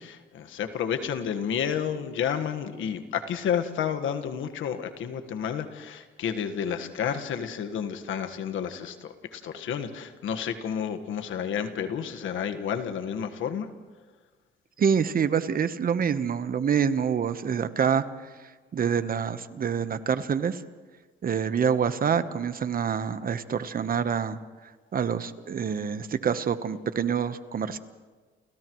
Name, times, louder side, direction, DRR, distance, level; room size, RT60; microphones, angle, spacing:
voice 1, 0.0-13.7, left 8 dB, 80° left, 8 dB, 1.5 m, -31 dB
voice 2, 14.8-18.0 18.7-20.6 21.2-24.4 24.9-27.8, right 7 dB, 45° right, 12 dB, 1.0 m, -26 dB
29.5 x 29.5 x 3.1 m, 1.4 s
cardioid pair, 90°, 20 cm